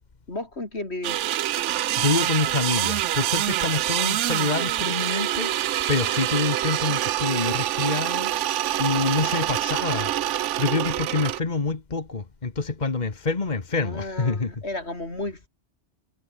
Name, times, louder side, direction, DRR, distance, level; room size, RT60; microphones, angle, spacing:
voice 1, 0.3-1.2 13.8-15.5, left 2 dB, 60° left, 5.2 m, -33 dB
sound 1, 1.0-11.4, right 13 dB, 80° right, 0.9 m, -26 dB
voice 2, 2.0-14.5, left 3 dB, 40° left, 1.7 m, -27 dB
omnidirectional pair, 1.2 m